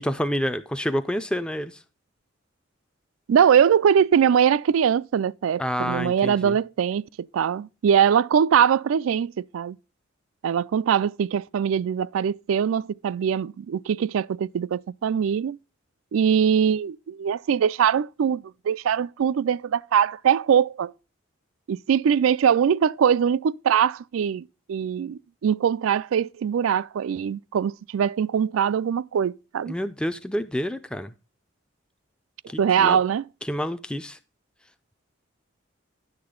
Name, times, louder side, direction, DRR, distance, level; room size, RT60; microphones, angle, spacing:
voice 1, 0.0-1.8 5.6-6.6 29.7-31.1 32.5-33.0 33.4-34.2, equal, 5° left, 0.4 m, -28 dB
voice 2, 3.3-7.1 7.3-9.8 10.4-15.6 16.1-20.9 21.7-29.7 32.6-33.2, right 8 dB, 85° right, 0.3 m, -22 dB
10.0 x 6.8 x 3.7 m
head